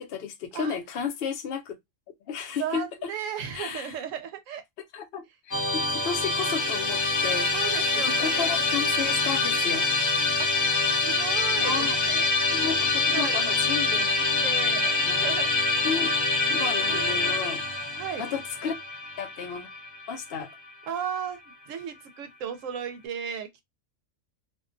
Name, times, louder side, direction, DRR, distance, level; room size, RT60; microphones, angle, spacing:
voice 1, 0.0-1.8 2.3-3.1 3.5-3.9 4.9-7.5 8.0-9.8 11.6-12.0 12.5-14.1 15.1-15.2 15.8-16.1 16.5-17.6 18.2-18.7 19.2-19.7 20.1-20.5, left 6 dB, 65° left, 0.6 m, -33 dB
voice 2, 2.6-4.6 7.5-8.7 10.4-12.4 13.1-13.4 14.1-15.5 16.9-17.6 17.9-18.3 20.9-21.4 21.7-23.6, right 8 dB, 75° right, 0.9 m, -35 dB
Musical instrument, 5.5-20.7, left 3 dB, 30° left, 0.3 m, -25 dB
2.5 x 2.2 x 2.4 m
omnidirectional pair, 1.4 m